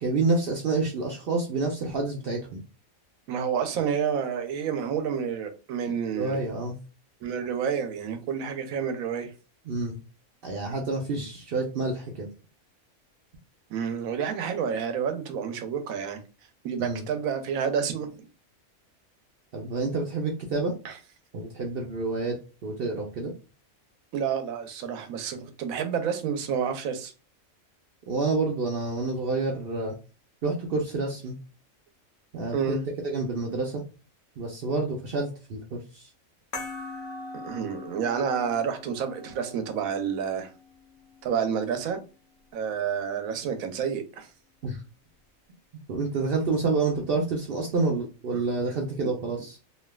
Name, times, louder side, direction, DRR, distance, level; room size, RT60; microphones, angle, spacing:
voice 1, 0.0-2.6 6.2-6.8 9.7-10.0 10.4-12.3 16.8-17.0 19.5-20.7 21.3-22.4 22.6-23.3 28.1-30.0 30.4-31.4 32.3-32.8 33.0-33.8 34.4-36.1 44.6-44.8 45.9-49.6, right 3 dB, 60° right, 0.6 m, -28 dB
voice 2, 3.3-6.4 7.2-9.3 13.7-16.2 16.6-18.1 20.8-20.9 24.1-27.1 32.5-32.8 37.4-40.5 41.2-42.0 42.5-44.3 48.3-48.4 49.0-49.1, right 7 dB, 85° right, 1.0 m, -29 dB
sound 1, 36.5-41.6, left 3 dB, 45° left, 0.9 m, -42 dB
3.2 x 2.5 x 2.2 m
omnidirectional pair, 1.4 m